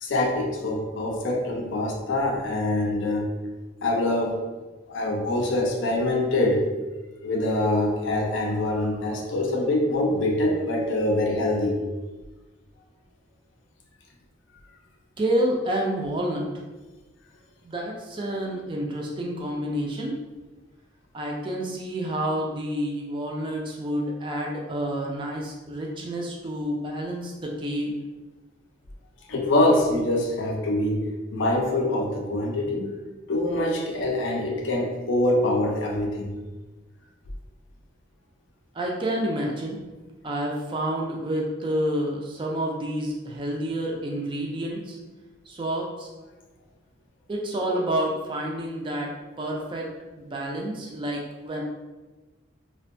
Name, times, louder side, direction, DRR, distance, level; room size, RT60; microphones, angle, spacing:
voice 1, 0.0-3.3 3.8-4.4 4.9-6.7 7.2-11.8 29.3-33.0 33.3-36.3, left 1 dB, 70° left, 2 dB, 0.4 m, -24 dB
voice 2, 15.2-16.5 17.6-20.1 21.1-28.0 38.7-39.8 40.2-45.0 45.5-46.1 47.3-49.9 50.2-51.6, right 1 dB, 25° right, -1 dB, 0.3 m, -29 dB
2.5 x 2.1 x 2.5 m, 1.2 s
head